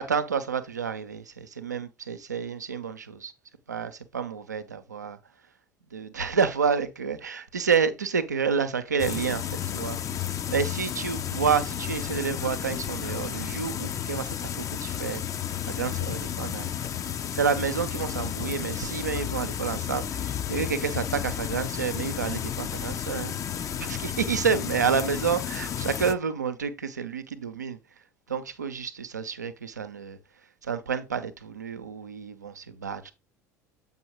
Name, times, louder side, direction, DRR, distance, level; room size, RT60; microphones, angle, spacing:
voice 1, 0.0-3.3 3.7-5.2 5.9-10.0 10.5-15.2 15.7-16.7 17.3-23.4 23.8-27.8 28.3-30.2 30.6-33.1, right 6 dB, 85° right, 0.6 m, -29 dB
sound 1, 9.0-26.1, left 9 dB, 35° left, 0.6 m, -32 dB
7.7 x 5.4 x 2.9 m
figure-of-eight pair, 65°, 9 cm